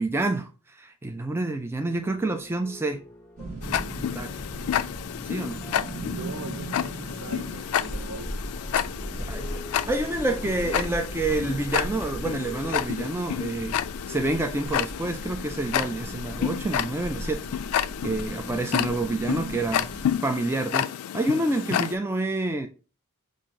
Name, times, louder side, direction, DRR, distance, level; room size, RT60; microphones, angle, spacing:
voice 1, 0.0-3.0 4.1-4.4 5.3-5.6 9.3-17.4 18.0-19.9 20.2-22.7, right 2 dB, 10° right, 0.3 m, -28 dB
sound 1, 1.9-12.9, left 2 dB, 10° left, 0.9 m, -48 dB
sound 2, 3.4-20.2, right 1 dB, 35° right, 1.3 m, -38 dB
Tick-tock, 3.6-21.9, left 10 dB, 80° left, 0.3 m, -30 dB
voice 2, 6.1-8.4, right 3 dB, 60° right, 0.6 m, -41 dB
5.6 x 2.5 x 3.6 m
head